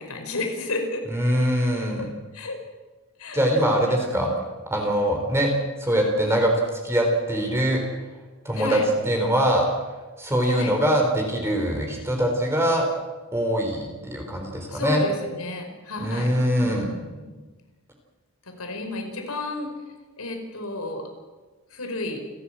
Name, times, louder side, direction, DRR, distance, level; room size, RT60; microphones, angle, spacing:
voice 1, 0.0-1.0 2.0-2.1 2.3-2.6 3.2-3.4 3.9-4.4 8.5-8.9 10.4-10.7 14.7-17.4 18.5-19.7 20.2-21.1 21.7-22.2, left 2 dB, 90° left, 4 dB, 5.4 m, -32 dB
voice 2, 1.1-2.0 3.3-4.3 4.7-5.5 5.8-6.5 6.8-7.8 8.4-8.8 9.0-9.7 10.2-12.9 13.3-15.0 16.0-16.9, equal, 10° right, 1 dB, 4.0 m, -23 dB
29.5 x 14.5 x 7.6 m, 1.3 s
head